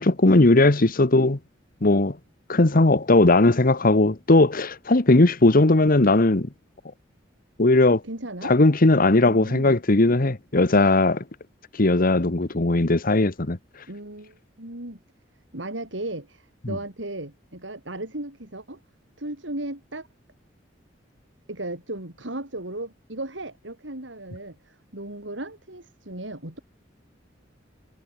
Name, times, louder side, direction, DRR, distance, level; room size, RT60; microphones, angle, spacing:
voice 1, 0.0-1.4 1.8-2.2 2.5-6.5 7.6-8.0 8.4-11.2 11.7-13.6 16.6-16.7, left 2 dB, 50° left, 1.3 m, -18 dB
voice 2, 8.0-8.5 9.2-9.8 13.9-15.0 15.5-18.8 19.2-20.1 21.5-26.6, right 1 dB, 85° right, 5.0 m, -36 dB
head